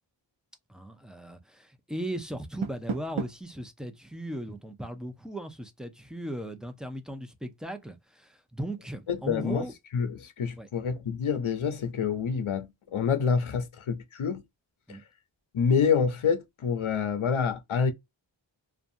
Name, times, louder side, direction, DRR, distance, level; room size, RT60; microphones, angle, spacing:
voice 1, 0.7-9.7 10.6-10.7 14.9-15.0, right 1 dB, ahead, 0.5 m, -37 dB
Door, 2.3-3.6, right 5 dB, 75° right, 0.6 m, -36 dB
voice 2, 9.1-9.7 9.9-14.4 14.9-15.0 15.5-17.9, left 6 dB, 85° left, 0.6 m, -27 dB
2.6 x 2.3 x 2.5 m
wide cardioid pair, 45°, 48 cm